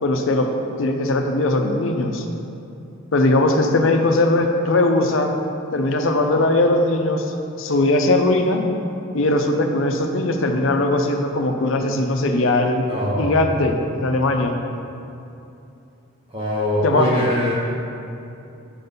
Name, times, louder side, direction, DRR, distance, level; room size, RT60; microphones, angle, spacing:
voice 1, 0.0-0.5 0.8-2.3 3.1-5.3 5.7-8.6 9.1-12.9 13.2-14.6 16.8-17.1, left 2 dB, 65° left, 4 dB, 0.6 m, -19 dB
voice 2, 12.9-13.6 16.3-17.5, equal, 25° right, -6 dB, 0.8 m, -23 dB
6.7 x 3.9 x 5.4 m, 2.7 s
head